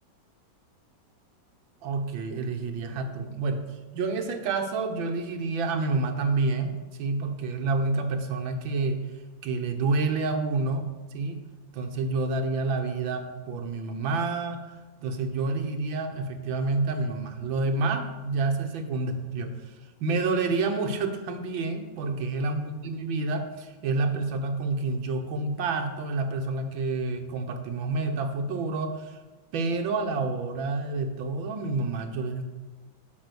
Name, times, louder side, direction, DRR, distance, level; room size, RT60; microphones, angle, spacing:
voice 1, 1.8-3.6 3.9-9.1 9.4-11.4 11.7-14.7 15.0-19.6 20.0-29.2 29.5-32.5, right 3 dB, 80° right, 5 dB, 1.8 m, -28 dB
9.3 x 5.4 x 6.9 m, 1.2 s
omnidirectional pair, 2.1 m